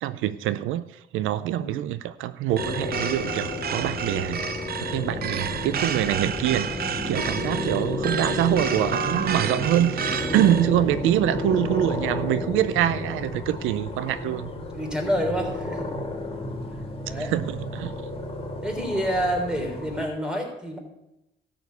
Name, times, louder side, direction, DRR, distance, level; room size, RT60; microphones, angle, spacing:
voice 1, 0.0-4.4 4.8-14.5 17.2-17.9, right 12 dB, 90° right, 15 dB, 0.5 m, -25 dB
sound 1, 2.5-20.1, left 2 dB, 30° left, 1.8 m, -32 dB
sound 2, 2.6-10.7, right 8 dB, 50° right, 0.6 m, -31 dB
sound 3, 5.0-12.2, right 1 dB, 30° right, 2.3 m, -38 dB
voice 2, 14.7-15.9 17.0-17.3 18.6-20.8, equal, 5° right, 0 dB, 3.5 m, -28 dB
13.0 x 5.1 x 8.1 m, 0.88 s
cardioid pair, 90°, 20 cm